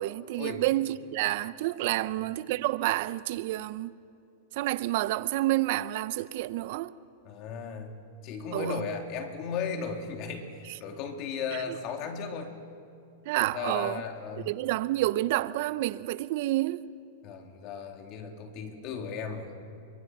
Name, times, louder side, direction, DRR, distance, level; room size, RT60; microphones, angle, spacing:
voice 1, 0.0-3.9 4.5-6.9 8.5-8.8 11.5-11.8 13.3-14.0 14.5-16.9, right 16 dB, 60° right, 0.7 m, -29 dB
voice 2, 7.2-12.5 13.5-14.5 17.2-19.5, left 5 dB, 45° left, 3.4 m, -36 dB
30.0 x 23.5 x 6.1 m
hypercardioid pair, 125°, 0 cm